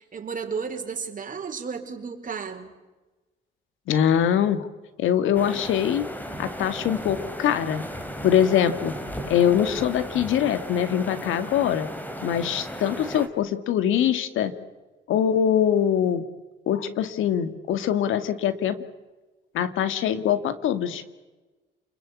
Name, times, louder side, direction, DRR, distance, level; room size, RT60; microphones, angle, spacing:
voice 1, 0.0-2.7, right 5 dB, 40° right, 5 dB, 4.6 m, -33 dB
voice 2, 3.9-4.7 5.0-6.1 6.4-7.8 8.2-9.0 9.3-11.9 12.2-14.5 15.1-16.2 16.7-18.8 19.5-21.0, left 9 dB, 85° left, 11 dB, 2.1 m, -23 dB
sound 1, 5.3-13.3, equal, 10° left, 3.8 m, -35 dB
29.5 x 21.5 x 8.6 m, 1.2 s
cardioid pair, 90°, 20 cm